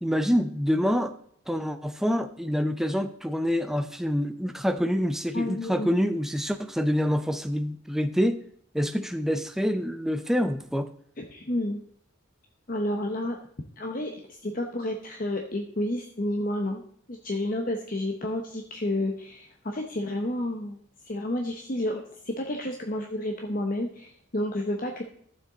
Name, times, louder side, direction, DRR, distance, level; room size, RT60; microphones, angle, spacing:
voice 1, 0.0-1.1 1.5-8.4 8.7-10.9, equal, ahead, 8 dB, 0.5 m, -26 dB
voice 2, 5.3-5.9 11.2-11.8 12.7-13.4 13.8-16.8 17.1-25.0, left 1 dB, 40° left, 3 dB, 0.9 m, -30 dB
12.0 x 7.4 x 3.9 m, 0.63 s
head